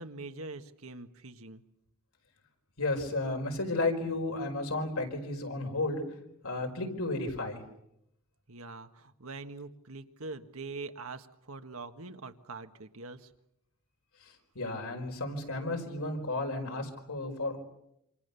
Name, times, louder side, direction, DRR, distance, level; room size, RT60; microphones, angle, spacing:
voice 1, 0.0-1.6 8.5-13.3, right 3 dB, 70° right, 8 dB, 1.7 m, -43 dB
voice 2, 2.8-6.0 6.4-7.6 14.2-17.6, left 2 dB, 80° left, 3 dB, 5.0 m, -33 dB
28.0 x 26.5 x 7.0 m, 0.80 s
head